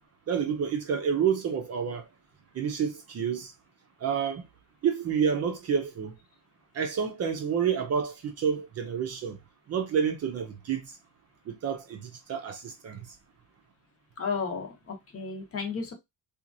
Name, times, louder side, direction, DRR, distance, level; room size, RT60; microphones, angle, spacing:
voice 1, 0.3-2.0 2.5-3.5 4.0-4.4 4.8-6.1 6.7-9.4 9.7-10.8 11.5-13.0, right 7 dB, 40° right, 0.6 m, -29 dB
voice 2, 14.2-15.9, left 5 dB, 35° left, 0.8 m, -33 dB
2.9 x 2.4 x 2.5 m
cardioid pair, 140°, 39 cm